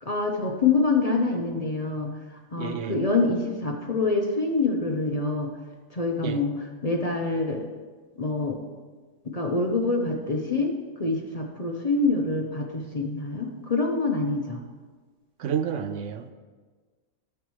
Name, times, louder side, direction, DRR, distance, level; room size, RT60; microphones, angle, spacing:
voice 1, 0.0-2.1 2.5-5.5 5.9-6.5 6.8-7.7 8.2-8.6 9.2-10.7 11.0-14.6, left 3 dB, 35° left, 2 dB, 0.7 m, -25 dB
voice 2, 2.6-3.0 6.2-6.4 15.4-16.3, right 8 dB, 75° right, 9 dB, 0.9 m, -30 dB
14.0 x 7.3 x 3.1 m, 1.4 s
omnidirectional pair, 1.3 m